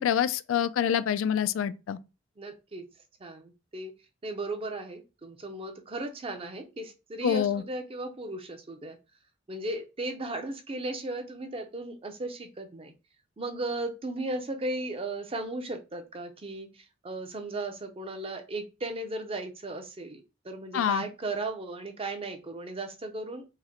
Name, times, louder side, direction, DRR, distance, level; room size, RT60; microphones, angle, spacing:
voice 1, 0.0-2.0 7.2-7.6 20.7-21.0, left 9 dB, 85° left, 0.3 m, -26 dB
voice 2, 2.4-2.8 3.2-3.9 4.2-9.0 9.5-12.9 13.4-23.5, right 2 dB, 30° right, 0.6 m, -36 dB
4.7 x 2.1 x 2.9 m
head